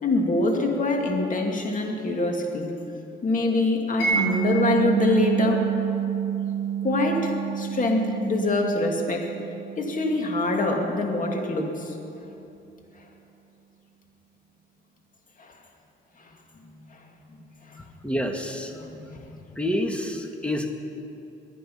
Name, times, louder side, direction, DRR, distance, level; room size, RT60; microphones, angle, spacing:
voice 1, 0.0-2.7 3.2-5.7 6.8-9.3 9.8-12.0 15.4-15.5 16.2-16.3 17.7-17.8 18.7-19.0 19.3-19.4, left 2 dB, 40° left, 1 dB, 2.5 m, -25 dB
Mallet percussion, 4.0-10.8, right 8 dB, 85° left, 4.4 m, -28 dB
voice 2, 18.0-18.7 19.5-20.7, left 1 dB, 5° left, 4 dB, 1.7 m, -28 dB
22.5 x 10.0 x 5.6 m, 2.8 s
cardioid pair, 90°, 20 cm